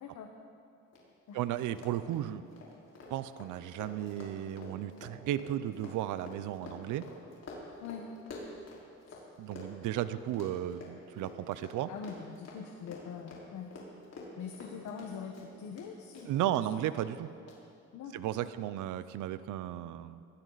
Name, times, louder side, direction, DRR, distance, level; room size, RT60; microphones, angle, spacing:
Run, 0.9-1.0 1.3-1.4 1.7-9.2 9.5-15.9 16.1-16.6 17.0-17.1 17.5-17.6, left 3 dB, 55° left, 4.5 m, -48 dB
voice 1, 1.3-2.4 3.1-7.1 9.4-11.9 16.3-17.3 18.1-20.2, right 12 dB, 90° right, 14 dB, 0.7 m, -34 dB
voice 2, 11.9-13.7 14.4-16.7 17.9-18.5, left 6 dB, 75° left, 3 dB, 1.4 m, -43 dB
20.5 x 17.0 x 4.1 m, 2.5 s
cardioid pair, 90°, 30 cm